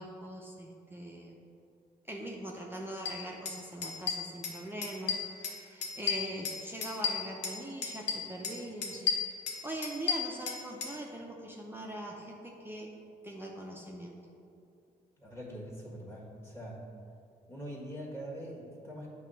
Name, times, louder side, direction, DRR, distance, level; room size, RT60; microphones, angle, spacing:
voice 1, 0.0-1.4 2.0-12.9 13.2-14.2, right 1 dB, 10° right, -1 dB, 0.7 m, -42 dB
sound 1, 3.0-3.1 3.4-3.6 3.8-4.6 4.8-5.5 5.8-7.6 7.8-8.5 8.8-10.9, left 6 dB, 90° left, 0.9 m, -33 dB
voice 2, 15.2-16.8 17.5-19.1, equal, 15° left, -3 dB, 1.6 m, -43 dB
8.1 x 3.0 x 5.6 m, 2.5 s
cardioid pair, 70°, 18 cm